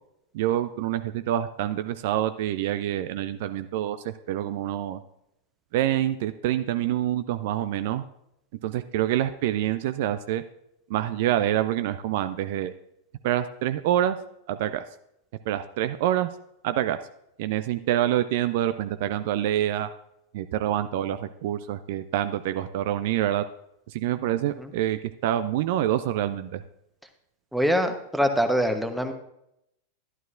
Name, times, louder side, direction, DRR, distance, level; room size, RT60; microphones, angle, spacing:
voice 1, 0.3-5.0 5.7-8.0 8.6-10.4 10.9-12.7 13.2-14.2 14.5-14.8 15.5-16.3 16.6-17.0 17.4-19.9 20.3-23.4 23.9-26.6, right 12 dB, 50° right, 11 dB, 0.4 m, -26 dB
voice 2, 27.5-29.1, equal, ahead, 6 dB, 1.0 m, -24 dB
12.0 x 11.0 x 2.5 m, 0.80 s
figure-of-eight pair, 90°, 0 cm